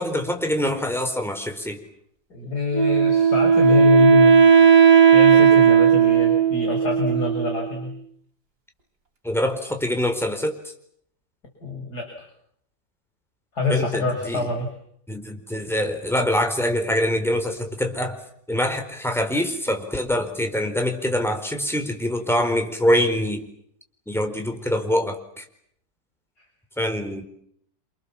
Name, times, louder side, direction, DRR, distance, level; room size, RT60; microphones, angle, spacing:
voice 1, 0.0-1.8 9.2-10.6 13.7-14.4 15.1-18.2 18.5-23.4 24.1-25.4 26.8-27.2, left 1 dB, ahead, 5 dB, 4.6 m, -24 dB
voice 2, 2.3-4.4 5.1-8.0 11.6-12.3 13.6-14.7 26.4-26.5, left 4 dB, 65° left, 1 dB, 6.8 m, -26 dB
Wind instrument woodwind instrument, 2.7-7.8, right 6 dB, 65° right, 3.9 m, -15 dB
29.0 x 28.0 x 7.4 m, 0.70 s
omnidirectional pair, 1.8 m